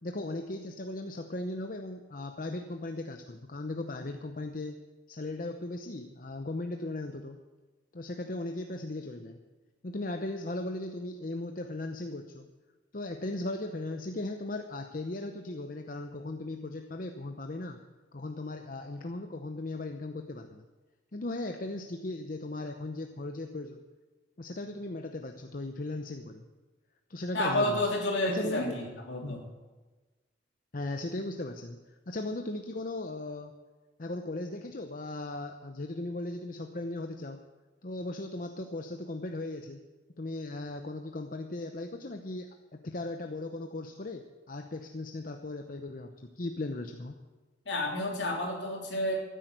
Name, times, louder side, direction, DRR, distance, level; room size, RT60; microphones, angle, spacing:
voice 1, 0.0-4.8 5.1-7.4 7.9-9.4 9.8-12.5 12.9-17.8 18.1-20.7 21.1-23.8 24.4-26.5 27.1-27.8 28.3-28.7 29.2-29.4 30.7-31.8 32.1-33.5 34.0-37.4 37.8-39.8 40.2-47.1, left 2 dB, 45° left, 5 dB, 0.8 m, -37 dB
voice 2, 27.3-29.4 47.6-49.2, left 1 dB, 65° left, 0 dB, 3.3 m, -30 dB
13.0 x 10.0 x 8.1 m, 1.3 s
head